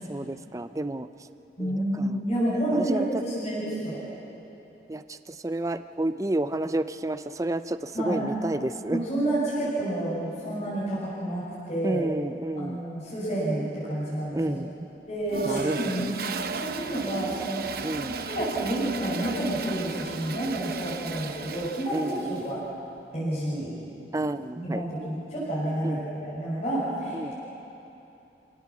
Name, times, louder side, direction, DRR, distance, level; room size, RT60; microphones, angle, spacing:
voice 1, 0.1-1.1 1.6-2.1 2.7-3.1 4.9-5.0 5.4-9.0 11.8-12.8 14.3-14.7 15.4-16.1 17.8-18.1 21.9-22.4 24.1-24.8 25.8-26.0 27.1-27.3, right 1 dB, 20° right, 11 dB, 0.5 m, -30 dB
voice 2, 1.6-4.0 7.9-8.2 8.9-12.0 12.6-14.4 15.1-22.6 23.1-23.8 24.6-27.3, right 1 dB, 35° left, -9 dB, 6.5 m, -29 dB
Toilet flush, 15.3-22.5, right 5 dB, 55° right, 0.9 m, -35 dB
28.0 x 17.5 x 7.2 m, 2.9 s
head